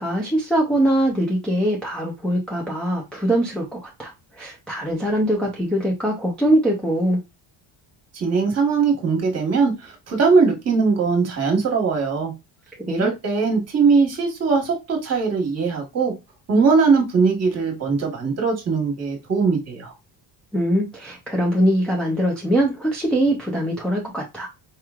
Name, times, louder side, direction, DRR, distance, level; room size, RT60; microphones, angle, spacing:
voice 1, 0.0-4.1 4.4-7.2 12.9-13.1 20.5-24.5, right 1 dB, ahead, 0.5 m, -22 dB
voice 2, 8.1-12.3 12.9-16.1 16.5-19.9, right 4 dB, 30° right, 1.3 m, -20 dB
4.7 x 3.0 x 2.4 m
cardioid pair, 160°, 47 cm